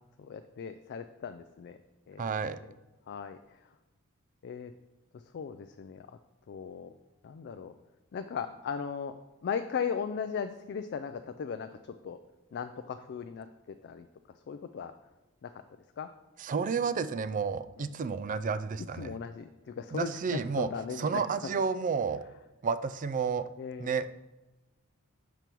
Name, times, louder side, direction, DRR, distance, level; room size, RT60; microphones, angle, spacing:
voice 1, 0.2-1.8 2.1-2.7 3.1-3.6 4.4-4.7 5.3-6.1 6.5-6.9 7.2-7.7 8.1-9.2 9.4-12.2 12.5-13.5 13.8-14.1 14.5-14.9 15.4-15.5 16.0-16.1 17.8-17.9 18.9-21.2 23.6-24.1, left 6 dB, 55° left, 8 dB, 0.3 m, -37 dB
voice 2, 2.2-2.6 16.4-19.2 19.9-20.7 21.0-22.2 22.6-23.5 23.8-24.1, right 5 dB, 40° right, 13 dB, 0.4 m, -31 dB
6.0 x 5.3 x 4.5 m, 1.1 s
head